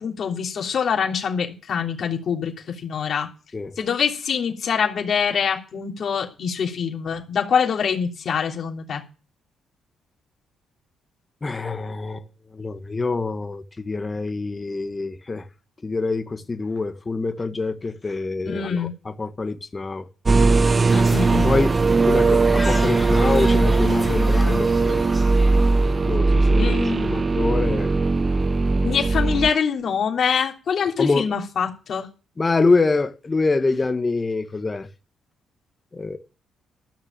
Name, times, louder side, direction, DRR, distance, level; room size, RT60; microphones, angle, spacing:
voice 1, 0.0-3.3 3.8-9.0 18.4-18.9 20.9-21.5 26.6-27.2 28.8-32.1, left 7 dB, 55° left, 3.2 m, -24 dB
voice 2, 11.4-12.2 12.5-15.4 15.8-20.1 21.3-21.8 22.1-25.1 26.0-27.9 31.0-31.3 32.4-34.9 35.9-36.2, left 3 dB, 25° left, 1.4 m, -25 dB
sound 1, 20.3-29.5, right 3 dB, 30° right, 0.7 m, -19 dB
sound 2, 20.9-26.1, equal, 10° right, 3.2 m, -35 dB
13.5 x 6.5 x 7.4 m
cardioid pair, 90°, 0 cm